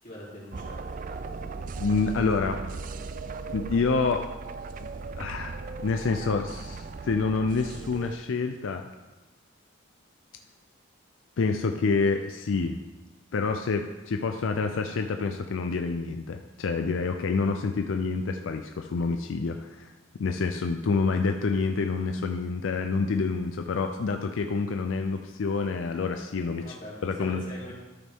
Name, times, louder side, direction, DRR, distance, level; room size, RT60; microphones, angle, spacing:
voice 1, 0.0-1.0 26.5-27.7, left 1 dB, 45° left, -7 dB, 3.1 m, -43 dB
sound 1, 0.5-8.2, right 4 dB, 45° right, 0.3 m, -37 dB
voice 2, 1.8-2.6 3.5-4.2 4.8-4.9 5.1-8.9 11.4-12.8 13.3-19.9 20.2-26.6 27.0-27.5, left 4 dB, 90° left, 6 dB, 0.5 m, -27 dB
13.0 x 5.2 x 3.6 m, 1.2 s
head